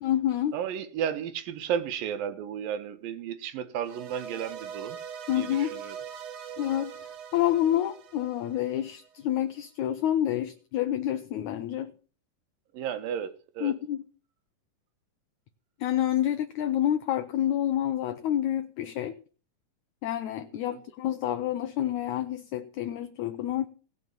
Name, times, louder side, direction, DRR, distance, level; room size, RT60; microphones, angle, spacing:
voice 1, 0.0-0.6 5.3-5.7 6.6-6.9 7.3-11.9 13.6-14.0 15.8-19.1 20.0-23.7, left 11 dB, 70° left, 2.0 m, -28 dB
voice 2, 0.5-5.0 5.4-6.0 12.7-13.7 20.7-20.8, right 9 dB, 90° right, 3.0 m, -33 dB
sound 1, 3.8-9.1, right 8 dB, 60° right, 2.0 m, -42 dB
18.0 x 6.2 x 7.0 m
omnidirectional pair, 3.9 m